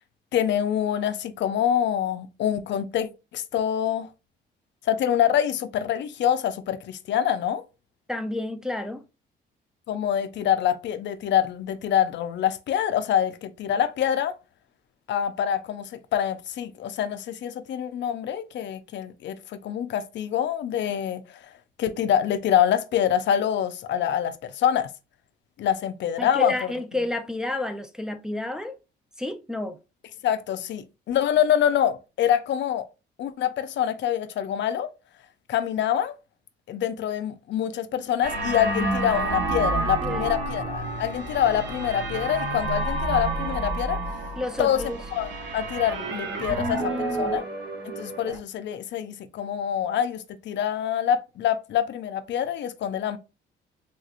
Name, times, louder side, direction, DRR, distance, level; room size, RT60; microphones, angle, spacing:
voice 1, 0.3-4.1 4.9-7.6 9.9-14.3 15.1-21.4 21.8-24.9 25.6-26.5 30.2-32.9 33.2-34.9 35.5-36.1 36.7-44.0 44.6-44.8 45.1-46.9 47.2-47.4 48.0-53.2, left 10 dB, 65° left, 0.5 m, -25 dB
voice 2, 8.1-9.0 26.2-28.8 29.2-29.8 39.8-40.3 44.4-45.0 46.5-47.3, left 2 dB, 5° right, 0.5 m, -30 dB
sound 1, 38.2-46.1, left 7 dB, 40° left, 0.8 m, -42 dB
sound 2, 38.2-48.4, right 2 dB, 65° right, 0.9 m, -29 dB
3.4 x 2.8 x 2.4 m
cardioid pair, 90°, 20 cm